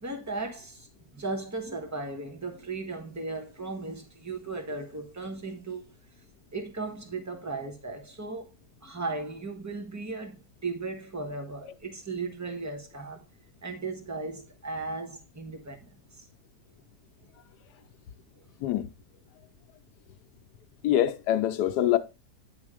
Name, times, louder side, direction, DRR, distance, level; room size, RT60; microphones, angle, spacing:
voice 1, 0.0-5.8 6.5-8.5 8.8-13.2 13.6-16.2 18.4-18.5, right 3 dB, 10° right, 1.1 m, -36 dB
voice 2, 20.8-22.0, left 12 dB, 80° left, 1.3 m, -24 dB
9.6 x 3.5 x 4.9 m
omnidirectional pair, 1.7 m